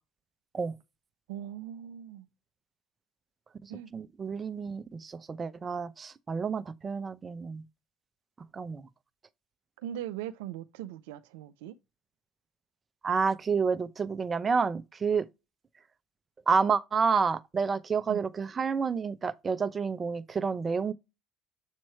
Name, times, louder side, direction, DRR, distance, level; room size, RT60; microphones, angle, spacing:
voice 1, 1.3-2.3 3.7-3.9 9.8-11.7 18.1-18.2, right 11 dB, 85° right, 0.4 m, -40 dB
voice 2, 3.9-7.6 8.5-8.9 13.0-15.3 16.5-20.9, right 5 dB, 35° right, 0.7 m, -29 dB
7.4 x 3.0 x 4.3 m
hypercardioid pair, 70°, 0 cm